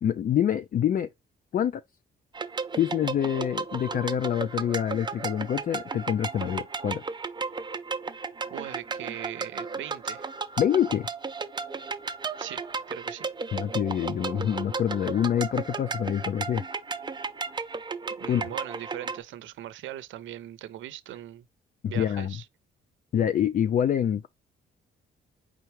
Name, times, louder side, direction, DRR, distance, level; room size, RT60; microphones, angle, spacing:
voice 1, 0.0-1.1 1.5-1.8 2.7-7.0 10.6-11.1 13.5-16.6 18.3-18.5 21.8-22.4 23.1-24.3, left 9 dB, 45° left, 0.4 m, -26 dB
sound 1, 2.3-19.2, right 4 dB, 20° right, 0.6 m, -34 dB
voice 2, 8.5-10.3 12.4-12.6 12.9-13.3 18.1-21.5 21.8-22.5, right 13 dB, 75° right, 0.6 m, -40 dB
4.5 x 3.6 x 3.1 m
cardioid pair, 90°, 20 cm